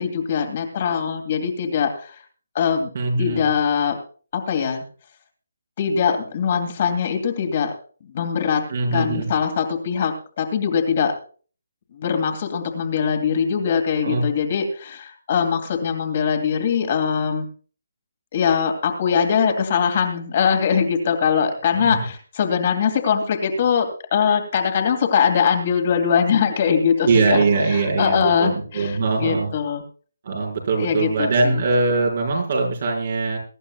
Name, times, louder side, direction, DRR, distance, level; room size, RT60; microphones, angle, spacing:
voice 1, 0.0-2.2 2.5-2.9 3.2-4.0 4.3-4.8 5.8-7.7 8.0-8.7 8.9-11.1 11.9-17.5 18.3-29.8 30.8-31.6, left 7 dB, 40° left, 4 dB, 2.6 m, -22 dB
voice 2, 2.9-3.5 8.7-9.3 14.0-14.2 21.8-22.0 27.0-29.5 30.2-33.4, right 3 dB, 55° right, 0 dB, 5.0 m, -21 dB
22.5 x 11.0 x 2.4 m, 0.40 s
hypercardioid pair, 155°, 0 cm